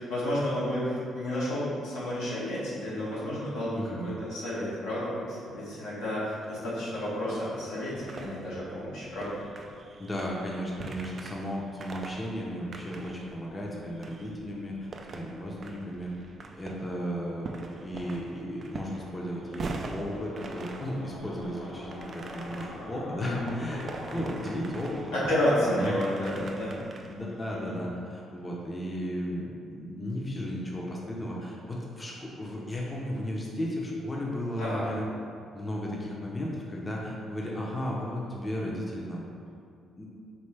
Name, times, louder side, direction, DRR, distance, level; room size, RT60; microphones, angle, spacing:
voice 1, 0.0-9.4 23.2-23.5 25.1-26.7 27.5-27.8 34.6-34.9, left 1 dB, 90° left, -8 dB, 1.3 m, -31 dB
voice 2, 3.7-4.1 10.0-16.1 16.5-17.5 17.8-23.8 24.1-25.2 25.6-26.2 27.0-35.0 35.5-39.2 40.0-40.1, equal, 20° left, -3 dB, 0.6 m, -35 dB
sound 1, 7.8-27.5, right 3 dB, 45° right, 0.3 m, -44 dB
sound 2, 17.5-25.7, left 1 dB, 60° left, 0.5 m, -46 dB
4.2 x 2.8 x 3.3 m, 2.4 s
cardioid pair, 85°, 0 cm